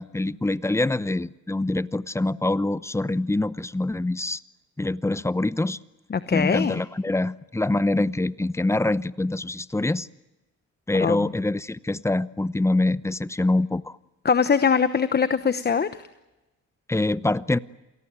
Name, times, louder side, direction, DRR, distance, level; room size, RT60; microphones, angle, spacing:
voice 1, 0.0-4.4 4.8-5.8 6.3-10.1 10.9-14.0 16.9-17.6, left 2 dB, 10° left, 17 dB, 0.8 m, -25 dB
voice 2, 6.1-6.8 10.9-11.3 14.2-16.1, left 6 dB, 35° left, 12 dB, 1.0 m, -22 dB
28.0 x 18.5 x 8.9 m, 1.0 s
cardioid pair, 90°, 30 cm